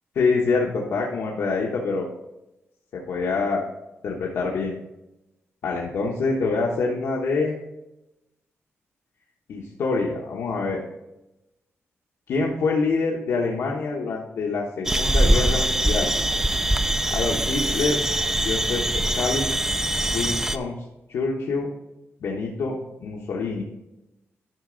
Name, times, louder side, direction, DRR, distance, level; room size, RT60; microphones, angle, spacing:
voice 1, 0.1-2.1 3.1-3.7 4.0-4.7 5.6-7.6 9.5-10.8 12.3-16.1 17.1-18.0 18.4-19.5 20.1-20.7 21.1-21.7 22.2-23.6, left 4 dB, 75° left, -2 dB, 1.1 m, -25 dB
sound 1, 14.9-20.6, right 1 dB, 10° right, 0.4 m, -23 dB
10.5 x 5.9 x 3.9 m, 0.94 s
wide cardioid pair, 155°, 5 cm